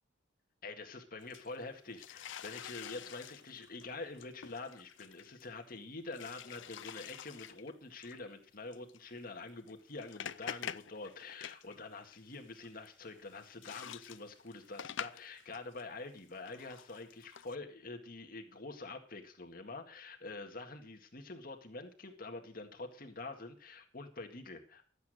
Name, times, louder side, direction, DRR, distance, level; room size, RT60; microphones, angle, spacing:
voice 1, 0.6-24.9, left 3 dB, 50° left, 5 dB, 1.9 m, -46 dB
sound 1, 1.2-5.8 6.1-7.7 8.0-8.2 8.7-9.0 9.6-11.8 12.0-15.8 16.2-17.6, left 9 dB, 70° left, 0.5 m, -47 dB
13.0 x 8.5 x 6.4 m, 0.41 s
head